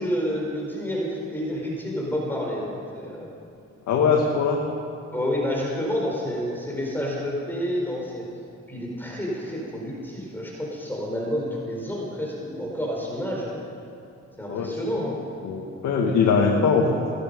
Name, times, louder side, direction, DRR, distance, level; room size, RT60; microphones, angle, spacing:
voice 1, 0.0-3.3 5.1-8.3 8.7-13.6 14.4-15.2, equal, 5° left, -3 dB, 4.6 m, -29 dB
voice 2, 3.9-4.6 14.5-14.7 15.4-16.9, left 5 dB, 75° left, 0 dB, 1.9 m, -21 dB
17.0 x 14.0 x 5.4 m, 2.5 s
cardioid pair, 90°, 30 cm